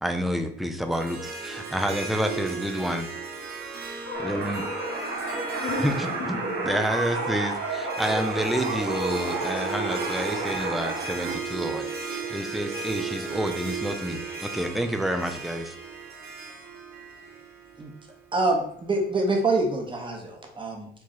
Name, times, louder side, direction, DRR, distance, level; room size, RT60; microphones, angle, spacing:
voice 1, 0.0-3.1 4.2-4.6 5.8-6.4 6.6-15.7, equal, ahead, 6 dB, 0.4 m, -29 dB
Harp, 0.9-18.2, right 5 dB, 50° right, 1.0 m, -36 dB
voice 2, 4.0-4.3 4.5-6.7, left 3 dB, 85° left, 0 dB, 1.1 m, -37 dB
sound 1, 4.1-11.3, right 3 dB, 75° right, 1.1 m, -31 dB
voice 3, 18.3-20.9, right 2 dB, 25° right, 1 dB, 1.0 m, -26 dB
4.5 x 2.3 x 3.0 m, 0.65 s
cardioid pair, 90°, 20 cm